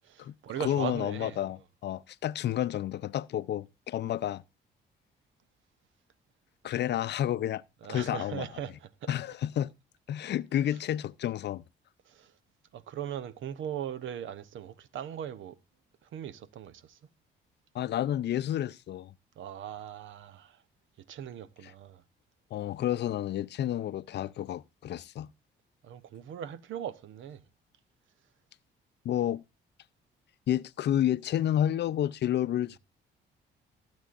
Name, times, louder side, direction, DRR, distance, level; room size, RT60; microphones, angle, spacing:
voice 1, 0.0-1.5 7.8-9.1 10.7-10.8 12.1-12.3 12.7-15.6 16.0-17.0 19.4-20.6 21.1-22.0 25.8-27.4, right 9 dB, 75° right, 0.9 m, -39 dB
voice 2, 0.6-4.4 6.6-7.6 7.9-8.5 9.1-9.7 10.1-11.6 17.7-19.1 22.5-25.3 29.0-29.4 30.5-32.8, left 11 dB, 60° left, 0.5 m, -30 dB
19.5 x 8.1 x 2.5 m
cardioid pair, 90°, 20 cm